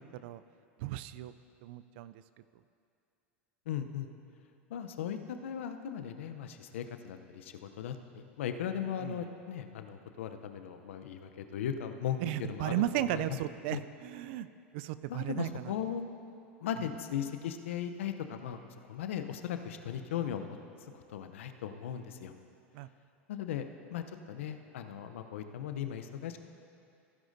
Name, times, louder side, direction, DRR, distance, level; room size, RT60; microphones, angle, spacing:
voice 1, 0.8-1.3 1.6-2.1 9.0-9.2 12.2-14.5 14.7-15.7 22.7-22.9, right 14 dB, 60° right, 14 dB, 0.3 m, -35 dB
voice 2, 3.7-4.1 4.7-13.4 13.7-13.8 15.1-16.1 16.6-18.6 18.9-20.6 20.9-22.3 23.3-23.6 23.9-26.4, left 9 dB, 75° left, 8 dB, 0.7 m, -38 dB
16.0 x 10.5 x 2.7 m, 2.6 s
hypercardioid pair, 90°, 7 cm